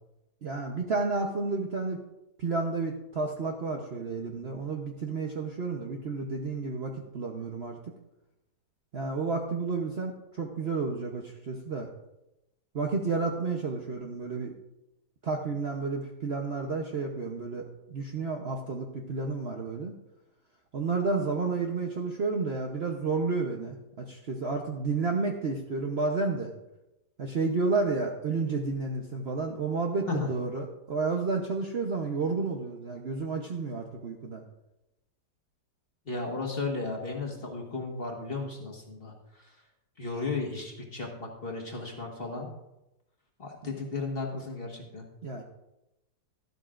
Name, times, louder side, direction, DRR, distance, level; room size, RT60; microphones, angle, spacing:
voice 1, 0.4-2.0 2.4-7.8 8.9-11.9 12.7-14.5 15.2-19.9 20.7-26.5 27.2-34.4 43.6-43.7 45.2-45.4, right 4 dB, 50° right, 1 dB, 0.9 m, -31 dB
voice 2, 36.1-39.1 40.0-42.5 43.4-45.0, left 3 dB, 35° left, 0 dB, 1.6 m, -34 dB
12.5 x 12.0 x 2.5 m, 0.91 s
omnidirectional pair, 1.9 m